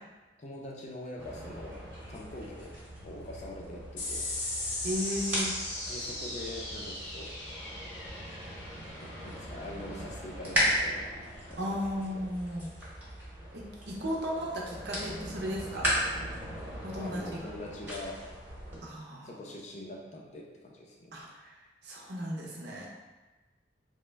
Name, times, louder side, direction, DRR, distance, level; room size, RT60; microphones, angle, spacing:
voice 1, 0.4-1.8 2.1-2.7 3.0-4.3 5.9-7.3 9.0-11.1 11.5-11.8 12.2-12.3 16.9-18.2 19.2-21.1, left 1 dB, 40° left, -1 dB, 0.4 m, -43 dB
sound 1, 1.2-18.8, equal, 10° right, 0.8 m, -37 dB
sound 2, 4.0-10.8, left 2 dB, 85° left, 0.7 m, -38 dB
voice 2, 4.8-5.5 11.6-12.7 13.5-15.9 16.8-17.4 18.8-19.3 21.1-21.3 21.8-22.9, equal, 65° right, -3 dB, 0.6 m, -35 dB
3.0 x 2.1 x 3.3 m, 1.2 s
head